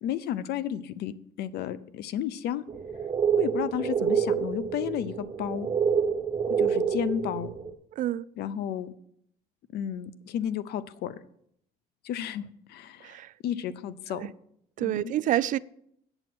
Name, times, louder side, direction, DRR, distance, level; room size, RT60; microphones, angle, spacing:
voice 1, 0.0-2.6 3.4-5.7 6.6-7.5 8.4-8.9 9.7-11.2 12.0-14.2 14.8-15.1, left 10 dB, 75° left, 0.7 m, -32 dB
sound 1, 2.7-7.7, right 7 dB, 30° right, 0.7 m, -27 dB
voice 2, 7.9-8.3 13.0-13.3 14.1-14.3 14.8-15.6, right 13 dB, 50° right, 0.4 m, -28 dB
8.9 x 7.1 x 6.1 m
cardioid pair, 110°, 17 cm